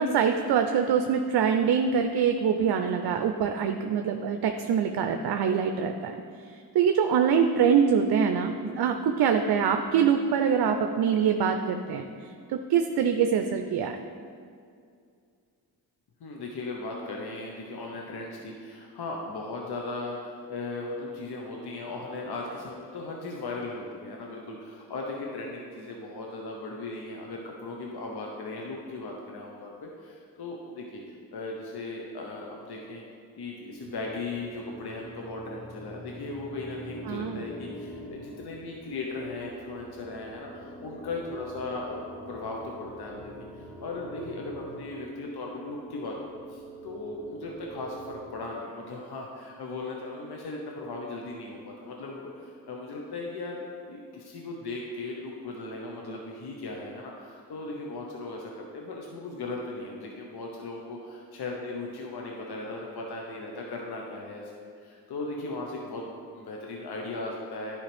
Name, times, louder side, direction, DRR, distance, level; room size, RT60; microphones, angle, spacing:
voice 1, 0.0-6.1 6.7-12.1 12.5-14.0 37.1-37.4, right 7 dB, 65° right, 6 dB, 0.5 m, -24 dB
voice 2, 16.2-33.0 33.4-42.0 42.3-43.3 43.6-67.8, left 2 dB, 65° left, -1 dB, 1.0 m, -37 dB
sound 1, 33.7-48.2, right 1 dB, 50° left, 1.9 m, -44 dB
10.0 x 4.9 x 3.4 m, 2.3 s
supercardioid pair, 50°, 41 cm